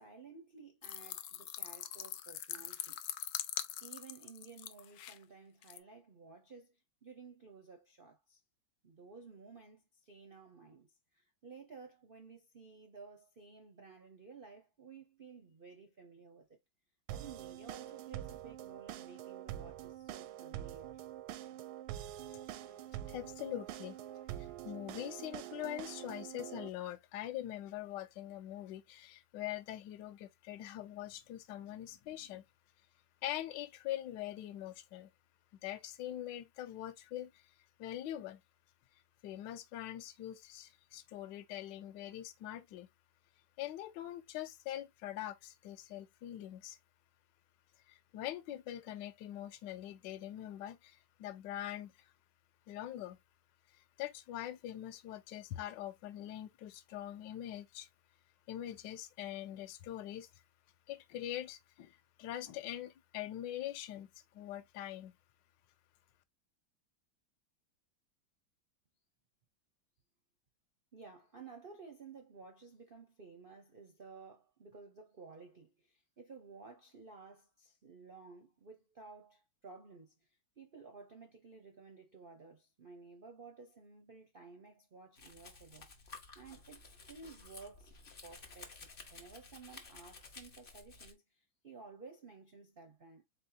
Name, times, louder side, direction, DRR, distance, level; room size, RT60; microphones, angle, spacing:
voice 1, 0.0-3.0 3.8-8.4 8.8-16.6 17.1-21.0 70.9-85.9 86.3-87.9 88.2-93.2, right 4 dB, 65° right, 0.5 m, -54 dB
sound 1, 0.8-5.2 5.6-5.8, left 11 dB, 90° left, 0.8 m, -42 dB
sound 2, 17.1-26.7, right 12 dB, 85° right, 1.4 m, -45 dB
voice 2, 23.1-24.0 24.4-32.4 33.2-35.1 35.6-37.5 37.8-38.4 39.2-42.9 43.6-46.8 47.9-52.1 52.7-53.2 53.7-57.9 58.5-60.3 60.9-65.1, left 12 dB, 75° left, 1.2 m, -43 dB
Domestic sounds home sounds, 85.2-91.1, left 4 dB, 45° left, 0.7 m, -54 dB
4.3 x 3.9 x 2.7 m
omnidirectional pair, 2.2 m